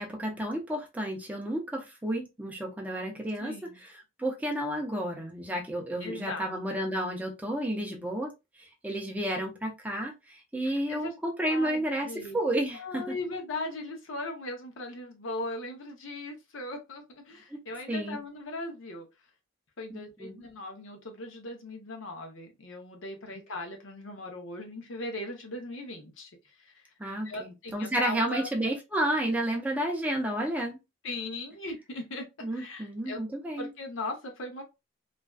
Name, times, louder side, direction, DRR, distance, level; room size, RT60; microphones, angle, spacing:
voice 1, 0.0-3.5 4.2-8.3 8.8-13.2 17.5-17.6 17.9-18.2 19.9-20.4 23.3-23.4 27.0-30.8 32.4-33.7, right 1 dB, 10° right, 0.5 m, -31 dB
voice 2, 3.4-3.8 6.0-6.9 10.9-11.2 11.4-12.4 12.8-19.1 19.8-26.8 27.2-28.5 31.0-33.2 33.6-34.6, left 2 dB, 75° left, 0.7 m, -39 dB
2.5 x 2.2 x 2.2 m
head